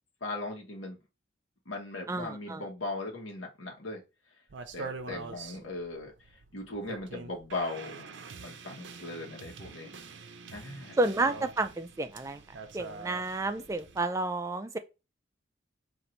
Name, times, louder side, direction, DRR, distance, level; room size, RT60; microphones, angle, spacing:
voice 1, 0.2-1.0 1.7-4.0 4.7-6.1 6.5-10.0 10.5-11.0, left 2 dB, 80° left, 1.1 m, -38 dB
voice 2, 2.1-2.6 11.0-12.4 12.7-14.8, right 2 dB, 15° right, 0.3 m, -30 dB
sound 1, 4.5-14.0, right 4 dB, 65° right, 0.5 m, -45 dB
3.9 x 2.6 x 4.3 m
head